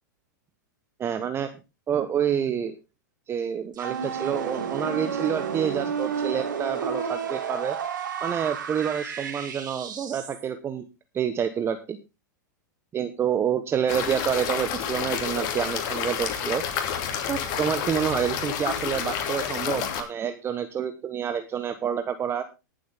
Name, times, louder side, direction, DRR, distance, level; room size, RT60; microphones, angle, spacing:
voice 1, 1.0-1.5 1.9-2.8 3.3-7.8 8.2-10.8 11.1-12.0 12.9-16.6 17.3-22.4, right 8 dB, 25° right, 9 dB, 1.1 m, -28 dB
sound 1, 3.7-10.4, right 7 dB, 85° right, 3.6 m, -31 dB
sound 2, 13.9-20.0, left 8 dB, 50° left, 2.8 m, -29 dB
19.5 x 7.7 x 3.6 m, 0.28 s
hypercardioid pair, 115°, 10 cm